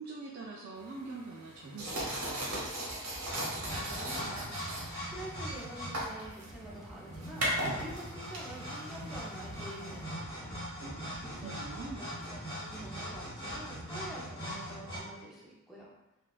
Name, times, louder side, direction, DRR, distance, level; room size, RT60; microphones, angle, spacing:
voice 1, 0.0-2.7 10.8-12.1, right 3 dB, 50° right, -3 dB, 0.3 m, -44 dB
sound 1, 0.8-10.0, right 1 dB, 80° right, 1.0 m, -39 dB
sound 2, 2.0-13.7, equal, 75° left, 0.9 m, -52 dB
sound 3, 3.2-15.0, equal, 25° left, 0.9 m, -41 dB
voice 2, 3.6-4.7 5.1-7.5 7.8-10.6 12.0-15.9, right 1 dB, ahead, -6 dB, 0.6 m, -47 dB
3.8 x 2.3 x 2.4 m, 1.0 s
head